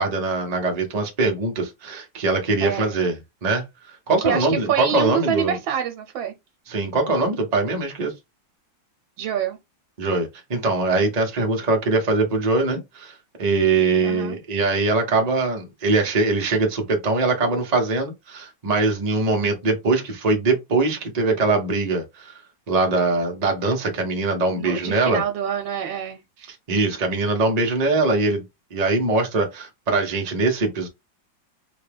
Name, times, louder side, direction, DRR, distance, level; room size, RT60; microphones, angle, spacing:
voice 1, 0.0-3.2 3.4-3.6 4.1-5.5 6.7-8.1 10.0-22.4 22.7-25.2 26.5-28.4 28.7-30.9, right 3 dB, 65° right, 0.4 m, -22 dB
voice 2, 2.6-3.0 4.2-6.3 9.2-9.6 14.0-14.4 24.6-26.2, right 9 dB, 85° right, 1.3 m, -26 dB
3.9 x 2.2 x 3.3 m
omnidirectional pair, 2.1 m